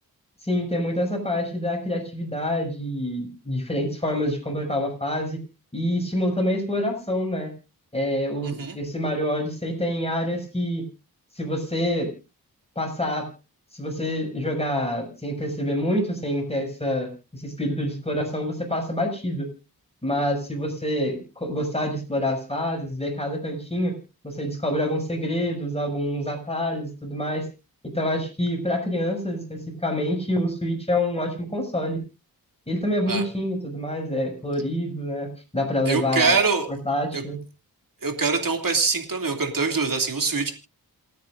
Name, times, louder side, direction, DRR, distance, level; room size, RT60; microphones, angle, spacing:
voice 1, 0.4-5.4 5.7-7.5 7.9-10.8 11.3-12.1 12.7-13.3 13.7-19.5 20.0-23.9 24.2-27.5 27.9-32.0 32.7-36.3 36.8-37.4, left 1 dB, 15° left, 2 dB, 6.5 m, -27 dB
voice 2, 8.4-8.8 33.1-33.2 35.9-36.7 37.1-37.2 38.0-40.5, right 4 dB, 60° right, 4 dB, 2.8 m, -23 dB
28.0 x 9.8 x 2.6 m, 0.29 s
cardioid pair, 60°, 37 cm